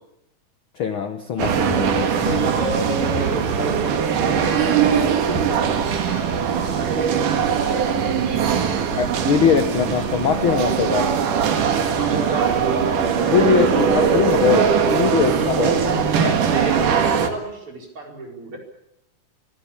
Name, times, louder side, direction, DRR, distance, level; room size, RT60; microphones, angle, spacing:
voice 1, 0.8-2.5 9.0-11.1 13.2-15.7 16.2-16.3, left 7 dB, 60° left, 10 dB, 1.5 m, -21 dB
sound 1, 1.4-17.3, right 7 dB, 75° right, 3.4 m, -21 dB
voice 2, 2.2-9.0 12.0-14.7 15.2-18.6, right 2 dB, 40° right, 1 dB, 5.8 m, -30 dB
25.5 x 16.5 x 8.7 m, 0.82 s
omnidirectional pair, 3.7 m